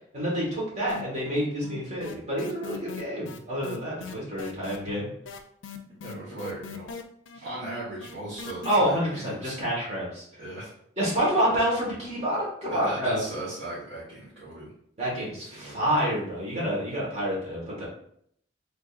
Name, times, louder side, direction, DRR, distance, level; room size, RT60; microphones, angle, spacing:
voice 1, 0.1-5.1 8.6-10.2 11.0-13.2 15.0-17.9, equal, 35° right, -5 dB, 1.3 m, -28 dB
sound 1, 0.9-1.4 1.6-8.8, left 5 dB, 80° left, 0.4 m, -41 dB
voice 2, 6.0-6.9 7.4-9.6 10.4-10.7 12.6-14.7 15.1-15.8, right 1 dB, 65° right, -10 dB, 1.2 m, -38 dB
3.6 x 3.4 x 2.4 m, 0.68 s
head